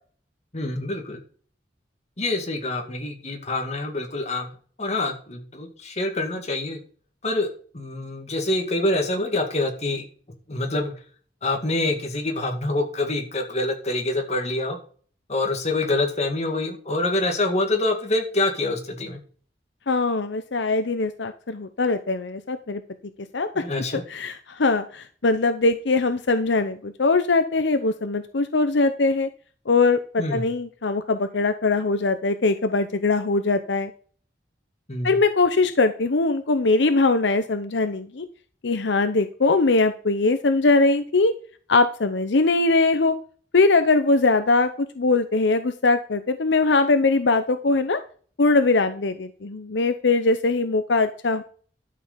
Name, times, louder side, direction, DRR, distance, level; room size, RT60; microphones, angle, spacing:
voice 1, 0.5-1.2 2.2-4.5 4.8-6.8 7.2-10.0 10.5-10.9 11.4-14.8 15.3-19.2 23.6-24.0 30.2-30.5 34.9-35.2, left 2 dB, 40° left, 3 dB, 2.3 m, -26 dB
voice 2, 19.9-22.8 23.3-23.6 23.9-29.3 29.7-33.9 35.0-38.3 38.6-41.3 41.7-43.1 43.5-44.7 45.0-48.0 48.4-51.4, left 3 dB, 80° left, 10 dB, 0.8 m, -21 dB
12.0 x 6.7 x 5.1 m, 0.43 s
head